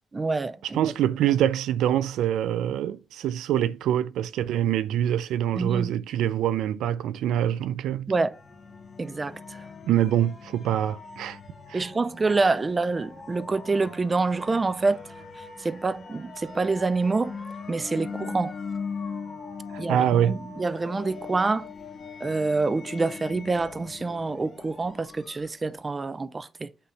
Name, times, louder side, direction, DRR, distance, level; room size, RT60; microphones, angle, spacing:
voice 1, 0.1-0.8 1.2-1.3 5.6-6.0 8.1-8.4 9.0-9.7 11.7-15.0 15.4-17.4 17.7-18.5 19.8-21.7 22.2-26.7, right 3 dB, 25° right, 0.5 m, -27 dB
voice 2, 0.7-8.1 9.8-11.4 11.7-11.8 19.7-20.4, right 11 dB, 85° right, 0.4 m, -25 dB
sound 1, 8.3-25.8, left 5 dB, 40° left, 1.7 m, -41 dB
8.4 x 3.2 x 5.7 m
cardioid pair, 90°, 0 cm